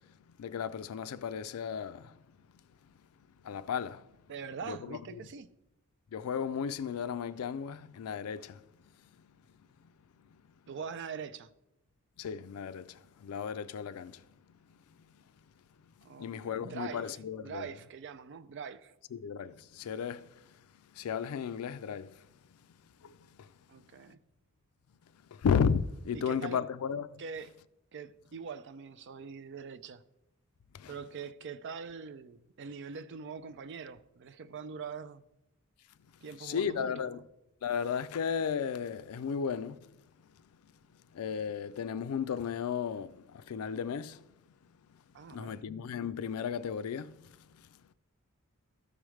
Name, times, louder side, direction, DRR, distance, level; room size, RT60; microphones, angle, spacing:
voice 1, 0.0-2.2 2.9-3.0 3.4-4.1 4.6-5.2 6.1-8.9 12.2-14.3 15.1-15.2 15.8-15.9 16.2-17.7 19.1-20.7 20.9-22.6 23.0-23.5 24.1-24.2 25.3-27.1 30.7-30.9 36.4-37.2 37.6-39.9 41.1-44.3 44.9-45.0 45.3-47.7, left 7 dB, 85° left, 0.4 m, -35 dB
voice 2, 4.3-5.5 10.7-11.5 16.0-17.1 17.4-18.9 23.7-24.2 26.1-26.6 27.2-27.5 27.9-30.0 30.9-35.2 36.2-37.2 45.1-45.6, right 6 dB, 55° right, 0.4 m, -43 dB
13.0 x 4.9 x 3.1 m
head